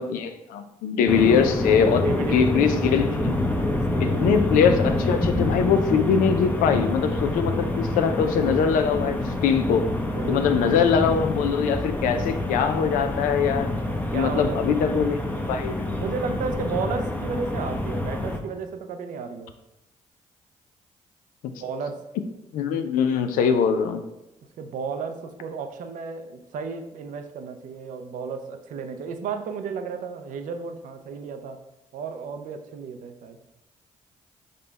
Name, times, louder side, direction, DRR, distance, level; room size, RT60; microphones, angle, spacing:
voice 1, 0.0-2.0 2.3-3.4 4.0-9.9 10.3-13.7 14.1-15.2 15.5-15.8 21.4-21.5 22.5-24.0, left 6 dB, 85° left, 8 dB, 0.4 m, -22 dB
sound 1, 1.1-18.4, left 1 dB, 10° left, 0.6 m, -27 dB
voice 2, 2.0-2.9 3.7-4.3 10.1-10.8 14.1-15.0 15.9-19.5 21.5-22.0 24.6-31.6 31.9-33.4, right 5 dB, 75° right, 7 dB, 0.5 m, -33 dB
5.1 x 2.3 x 4.0 m, 0.93 s
supercardioid pair, 60°, 14 cm